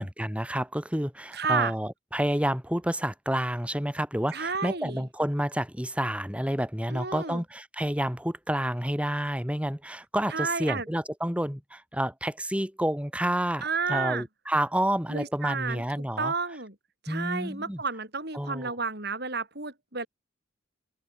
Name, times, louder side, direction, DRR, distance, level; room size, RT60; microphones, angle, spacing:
voice 1, 0.0-16.3 17.1-17.8 18.3-18.8, equal, 5° right, 5.8 m, -29 dB
voice 2, 1.3-1.7 4.3-5.0 6.9-7.4 10.3-10.8 13.6-14.2 15.1-15.8 16.2-16.7 17.0-20.1, right 4 dB, 50° right, 6.5 m, -31 dB
open air
head